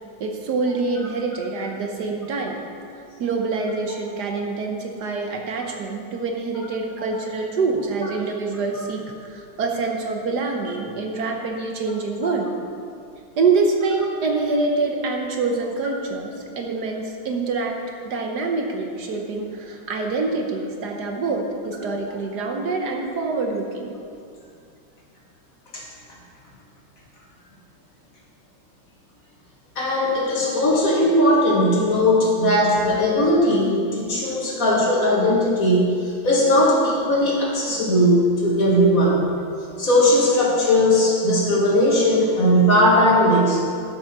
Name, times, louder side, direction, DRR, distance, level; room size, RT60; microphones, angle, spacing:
voice 1, 0.2-2.6 3.2-12.5 13.4-17.8 18.0-23.9, right 3 dB, 65° right, 2 dB, 1.4 m, -25 dB
voice 2, 29.8-36.0 36.2-39.2 39.8-43.6, left 1 dB, 50° left, -3 dB, 2.0 m, -18 dB
12.0 x 6.2 x 5.4 m, 2.4 s
omnidirectional pair, 2.0 m